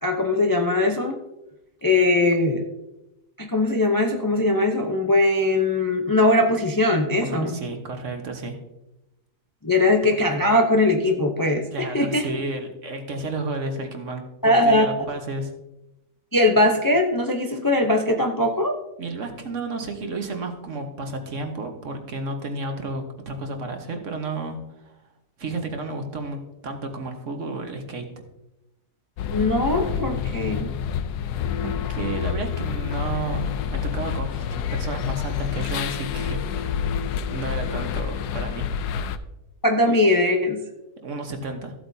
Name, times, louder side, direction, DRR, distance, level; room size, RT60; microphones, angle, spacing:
voice 1, 0.0-1.2 1.8-2.7 3.4-7.6 9.6-12.3 14.4-14.9 16.3-18.8 29.3-30.7 39.6-40.6, left 2 dB, 30° left, 3 dB, 0.3 m, -20 dB
voice 2, 7.2-8.6 11.7-15.5 19.0-25.0 25.4-28.2 31.6-36.8 37.3-38.7 41.0-41.7, right 2 dB, 50° right, 5 dB, 1.4 m, -32 dB
sound 1, 29.2-39.2, left 7 dB, 80° left, 1.2 m, -28 dB
14.5 x 8.0 x 2.7 m, 0.93 s
omnidirectional pair, 1.7 m